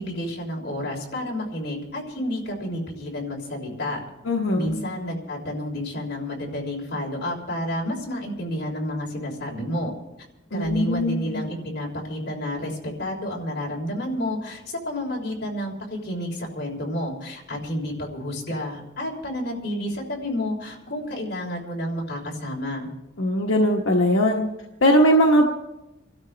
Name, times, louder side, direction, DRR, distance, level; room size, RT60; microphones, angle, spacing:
voice 1, 0.0-4.0 4.5-9.9 10.5-22.9, left 1 dB, 55° left, -1 dB, 3.4 m, -30 dB
voice 2, 4.3-4.7 10.5-11.4 23.2-24.4 24.8-25.5, equal, 85° left, 0 dB, 1.2 m, -20 dB
26.5 x 12.5 x 3.3 m, 0.95 s
head